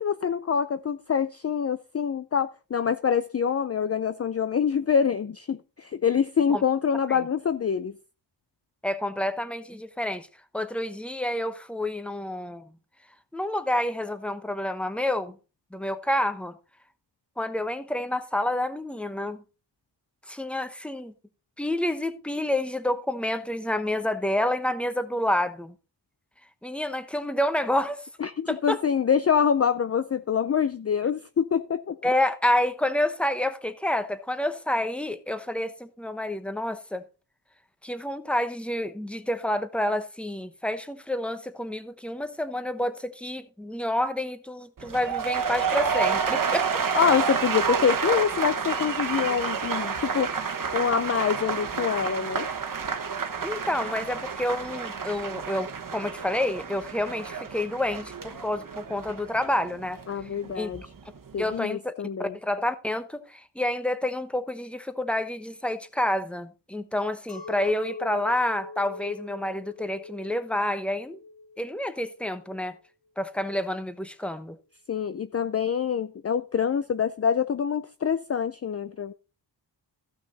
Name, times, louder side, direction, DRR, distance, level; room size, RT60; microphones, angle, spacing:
voice 1, 0.0-7.9 28.2-32.0 46.9-50.4 50.7-52.5 60.1-60.8 61.3-62.3 74.9-79.1, left 7 dB, 35° left, 0.5 m, -25 dB
voice 2, 8.8-10.3 10.5-12.8 13.3-15.4 15.7-16.6 17.4-19.4 20.3-21.1 21.6-25.7 26.6-28.1 28.5-28.8 32.0-37.0 37.8-46.8 53.4-60.0 60.6-60.7 61.4-61.9 62.2-71.2 71.6-72.8 73.2-74.6, left 1 dB, 5° left, 1.0 m, -28 dB
sound 1, 44.8-60.8 61.1-61.6, right 6 dB, 50° right, 1.3 m, -29 dB
Chink clink, 67.3-72.7, left 2 dB, 50° left, 1.8 m, -41 dB
15.0 x 6.1 x 4.0 m
wide cardioid pair, 115°, 44 cm